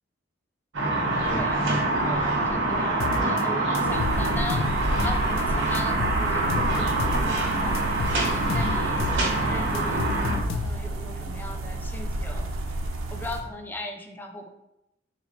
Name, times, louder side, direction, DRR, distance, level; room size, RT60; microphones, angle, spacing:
sound 1, 0.7-10.4, right 2 dB, 60° right, 1.1 m, -25 dB
voice 1, 1.2-4.7 5.0-7.9 8.1-10.1 10.5-12.5 13.1-14.5, left 1 dB, 10° left, 3 dB, 0.4 m, -38 dB
sound 2, 3.0-3.4 3.7-5.4 5.7-7.4 7.7-9.2 9.5-11.0, left 3 dB, 80° left, 0.4 m, -31 dB
sound 3, 3.9-13.4, right 2 dB, 85° right, 0.6 m, -32 dB
4.3 x 2.9 x 4.0 m, 0.85 s
head